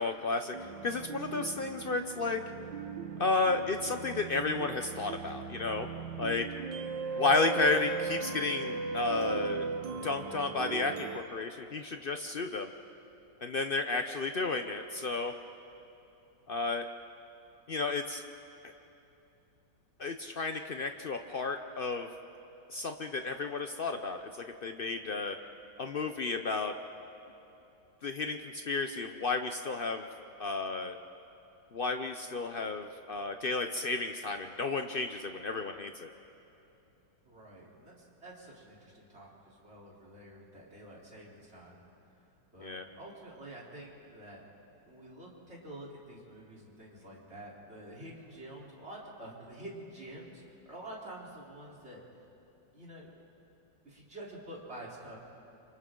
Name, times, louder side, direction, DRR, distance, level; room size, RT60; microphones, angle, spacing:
voice 1, 0.0-2.4 3.2-5.9 6.2-6.5 7.2-9.7 10.0-12.7 13.4-15.3 16.5-16.9 17.7-18.2 18.6-18.7 20.0-22.1 22.7-24.3 24.6-25.4 25.8-26.8 28.0-30.1 30.4-31.0 31.7-36.1 42.6-42.8, left 3 dB, 75° left, 6 dB, 0.5 m, -32 dB
sound 1, 0.5-11.2, right 4 dB, 75° right, 1.6 m, -38 dB
voice 2, 37.2-41.8 42.5-44.4 44.8-52.0 52.7-53.1 53.8-55.2, right 1 dB, 35° right, -5 dB, 4.0 m, -48 dB
29.5 x 26.5 x 3.8 m, 2.8 s
omnidirectional pair, 2.0 m